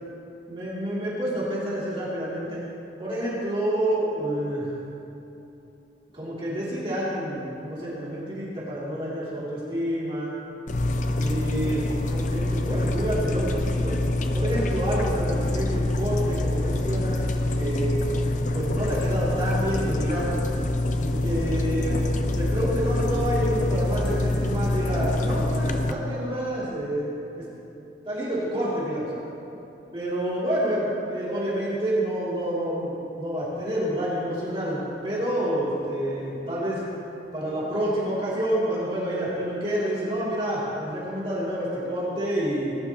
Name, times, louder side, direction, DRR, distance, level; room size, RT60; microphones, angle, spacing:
voice 1, 0.5-2.6 3.0-4.7 6.1-10.3 11.2-14.0 14.3-17.2 17.5-20.4 21.0-22.0 22.3-27.5 28.0-29.1 29.9-36.8 37.3-42.8, right 1 dB, 30° right, -9 dB, 2.8 m, -28 dB
sound 1, 10.7-25.9, left 1 dB, 40° left, 0.6 m, -25 dB
20.0 x 11.5 x 3.0 m, 3.0 s
head